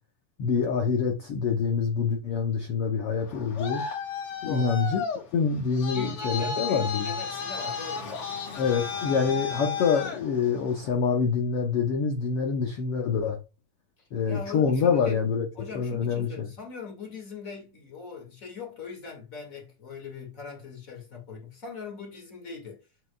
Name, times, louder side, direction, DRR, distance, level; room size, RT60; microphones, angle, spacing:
voice 1, 0.4-3.8 4.4-5.0 5.3-7.1 8.6-13.4 14.1-15.4 15.7-16.5, left 6 dB, 80° left, 1.3 m, -26 dB
Traffic noise roadway noise, 3.2-10.9, left 5 dB, 50° left, 2.0 m, -34 dB
voice 2, 5.9-8.4 14.3-15.3 15.5-22.9, left 5 dB, 30° left, 2.0 m, -41 dB
7.8 x 6.7 x 2.3 m
omnidirectional pair, 3.9 m